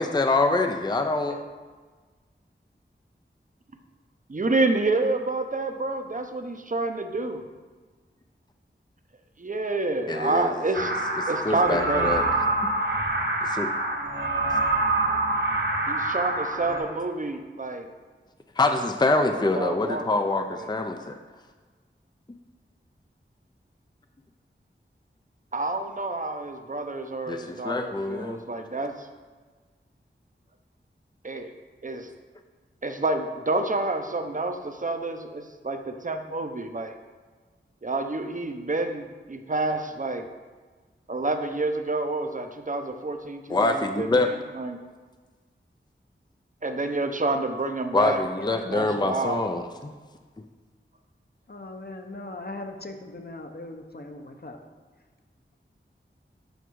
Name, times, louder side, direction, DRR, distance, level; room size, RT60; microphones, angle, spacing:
voice 1, 0.0-1.4 10.1-10.5 11.4-12.3 13.4-13.7 18.6-21.2 27.3-28.4 43.5-44.3 47.9-49.9, left 2 dB, 20° left, 6 dB, 0.5 m, -25 dB
voice 2, 4.3-7.4 9.4-10.9 11.3-12.1 15.9-17.9 19.1-19.3 19.5-20.1 20.5-20.7 25.5-29.1 31.2-31.5 31.8-32.1 32.8-37.0 37.8-40.3 41.1-44.8 46.6-48.2 48.5-49.4, right 2 dB, 40° right, 7 dB, 0.7 m, -28 dB
sound 1, 10.7-16.8, right 2 dB, 60° right, 1.7 m, -26 dB
voice 3, 48.4-48.9 51.5-54.6, left 2 dB, 50° left, 4 dB, 0.9 m, -39 dB
8.1 x 5.7 x 4.7 m, 1.4 s
wide cardioid pair, 55°, 20 cm